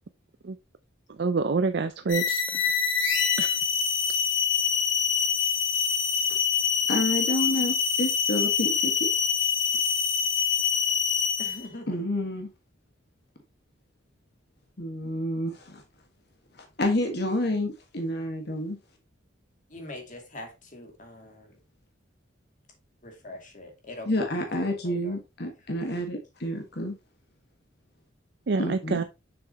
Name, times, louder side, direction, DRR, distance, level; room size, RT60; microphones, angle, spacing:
voice 1, 1.2-2.4 3.4-3.5 28.5-29.0, right 4 dB, 60° right, 0.5 m, -26 dB
sound 1, 2.1-11.7, left 7 dB, 85° left, 2.1 m, -25 dB
voice 2, 6.9-9.1 11.9-12.5 14.8-15.8 16.8-18.8 24.1-26.9 28.6-29.0, left 1 dB, 55° left, 1.5 m, -29 dB
voice 3, 11.4-12.0 19.7-21.6 23.0-25.2, left 1 dB, 40° left, 2.5 m, -43 dB
6.9 x 6.5 x 2.9 m
head